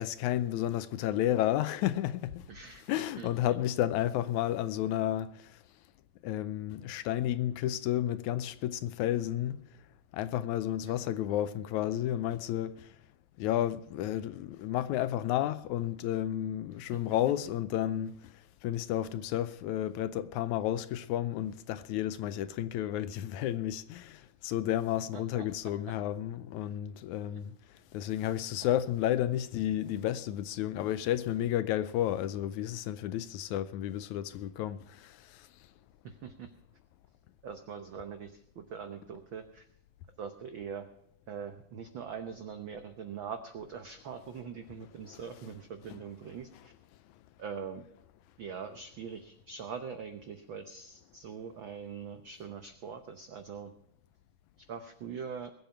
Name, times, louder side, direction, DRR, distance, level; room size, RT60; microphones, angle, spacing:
voice 1, 0.0-2.5 2.9-5.6 6.2-9.6 10.1-13.0 13.4-27.6 27.9-35.5 45.0-45.2 45.9-46.0, left 12 dB, 80° left, 2.0 m, -32 dB
voice 2, 2.5-3.5 10.9-11.0 16.9-17.0 25.1-25.5 28.6-28.7 36.0-36.5 37.4-39.7 40.2-40.9 41.3-46.7 47.4-47.8 48.4-53.7 54.6-55.5, right 6 dB, 85° right, 1.0 m, -42 dB
21.0 x 8.1 x 5.8 m
omnidirectional pair, 3.6 m